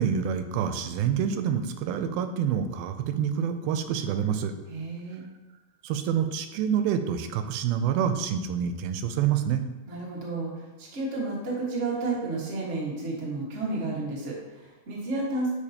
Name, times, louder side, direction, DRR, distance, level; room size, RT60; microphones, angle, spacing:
voice 1, 0.0-4.5 5.8-9.6, right 8 dB, 85° right, 8 dB, 2.4 m, -27 dB
voice 2, 4.7-5.2 9.9-15.5, right 3 dB, 65° right, -5 dB, 0.7 m, -31 dB
10.0 x 4.7 x 2.8 m, 1.1 s
omnidirectional pair, 4.3 m